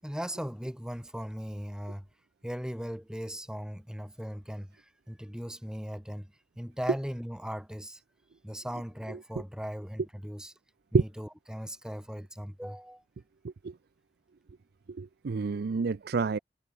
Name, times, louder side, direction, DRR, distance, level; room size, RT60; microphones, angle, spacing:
voice 1, 0.0-2.1 2.4-8.0 8.4-10.5 10.9-13.0, equal, 5° right, 6.5 m, -38 dB
voice 2, 14.9-16.4, right 4 dB, 60° right, 0.5 m, -28 dB
head